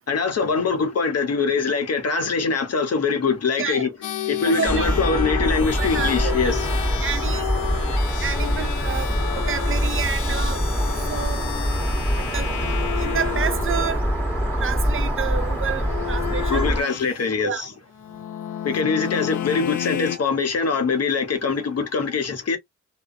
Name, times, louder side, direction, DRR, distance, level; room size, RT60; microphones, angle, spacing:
voice 1, 0.1-3.9 4.3-6.7 16.5-17.7 18.6-22.6, left 5 dB, 55° left, 1.0 m, -23 dB
voice 2, 3.6-3.9 4.4-5.2 5.8-6.6 7.0-7.5 8.2-10.6 11.1-11.4 12.2-12.6 13.0-14.0 14.6-16.6 17.4-17.7, right 8 dB, 45° right, 0.4 m, -29 dB
sound 1, 4.0-13.9 15.7-17.2 17.9-20.2, left 12 dB, 75° left, 0.5 m, -31 dB
sound 2, 4.6-16.8, equal, 5° left, 1.5 m, -24 dB
2.5 x 2.2 x 2.5 m
cardioid pair, 55°, 30 cm